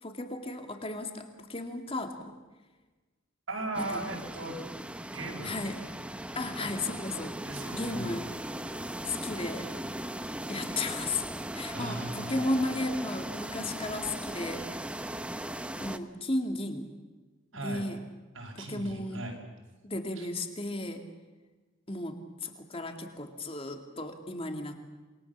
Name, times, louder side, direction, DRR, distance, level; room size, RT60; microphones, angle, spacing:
voice 1, 0.0-2.3 3.8-4.0 5.4-5.8 6.4-7.4 7.7-8.2 9.1-9.7 10.5-11.2 11.5-14.7 15.8-16.9 17.6-18.0 18.6-19.2 19.8-21.1 21.9-24.9, left 2 dB, 25° left, 5 dB, 2.4 m, -34 dB
voice 2, 3.5-4.6 5.1-5.6 6.6-6.8 7.4-8.1 11.7-12.5 17.5-17.8 18.3-19.3 20.1-20.3, right 2 dB, 75° right, 0 dB, 6.4 m, -38 dB
sound 1, 3.7-16.0, right 1 dB, 5° right, 0.8 m, -38 dB
28.0 x 22.0 x 7.4 m, 1.3 s
head